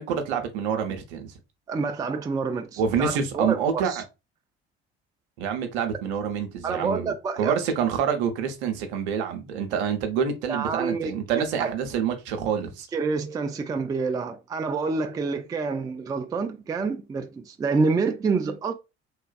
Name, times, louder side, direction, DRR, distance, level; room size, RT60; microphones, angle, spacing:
voice 1, 0.0-1.3 2.8-4.0 5.4-12.9, right 7 dB, 70° right, 0.7 m, -27 dB
voice 2, 1.7-4.0 6.6-7.5 10.5-11.7 12.9-18.7, right 4 dB, 10° right, 0.3 m, -28 dB
3.3 x 2.3 x 2.3 m
figure-of-eight pair, 50°, 34 cm